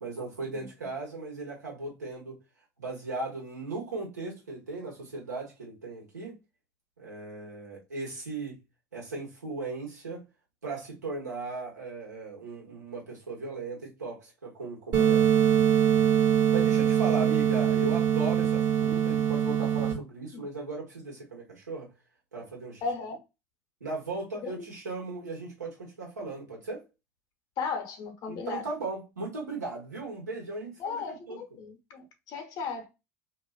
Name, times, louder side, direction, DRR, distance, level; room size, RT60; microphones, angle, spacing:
voice 1, 0.0-2.4 2.8-6.4 7.0-8.6 8.9-10.2 10.6-15.3 16.5-21.9 22.3-22.8 23.8-26.8 28.3-31.4, right 3 dB, 85° right, 1.1 m, -37 dB
sound 1, 14.9-19.9, right 9 dB, 45° right, 1.0 m, -23 dB
voice 2, 22.8-23.2 24.4-24.7 27.6-28.6 30.8-32.9, left 5 dB, 50° left, 0.9 m, -36 dB
2.6 x 2.4 x 2.3 m
figure-of-eight pair, 70°, 9 cm